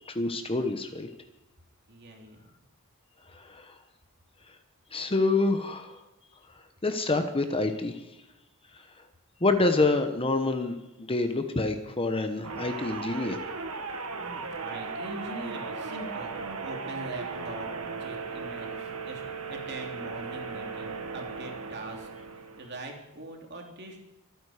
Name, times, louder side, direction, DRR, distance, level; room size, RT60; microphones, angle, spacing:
voice 1, 0.1-1.1 3.3-3.7 4.9-6.0 6.8-8.0 9.4-13.4, left 3 dB, 25° left, 8 dB, 1.1 m, -27 dB
voice 2, 1.9-2.5 14.2-17.7 18.0-19.2 19.5-24.0, right 2 dB, 50° right, 1 dB, 3.0 m, -42 dB
sound 1, 12.4-22.8, right 4 dB, 80° right, 1.8 m, -37 dB
24.5 x 9.4 x 5.0 m, 0.97 s
head